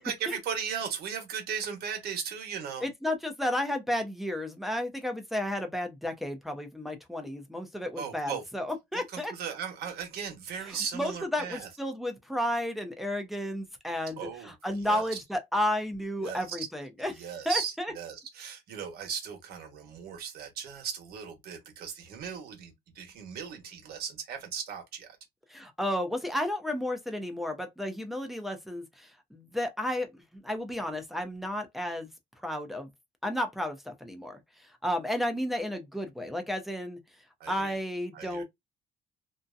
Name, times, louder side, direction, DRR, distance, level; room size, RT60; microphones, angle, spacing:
voice 1, 0.0-2.9 8.0-8.4 8.9-11.7 14.2-14.5 14.8-15.2 16.2-16.7 17.1-25.2 37.4-37.8 38.1-38.4, right 7 dB, 70° right, 1.1 m, -37 dB
voice 2, 2.8-9.3 10.6-17.9 25.5-32.1 32.4-32.9 33.2-37.0 37.5-38.4, left 1 dB, ahead, 0.6 m, -32 dB
2.7 x 2.1 x 2.5 m
cardioid pair, 110°, 17 cm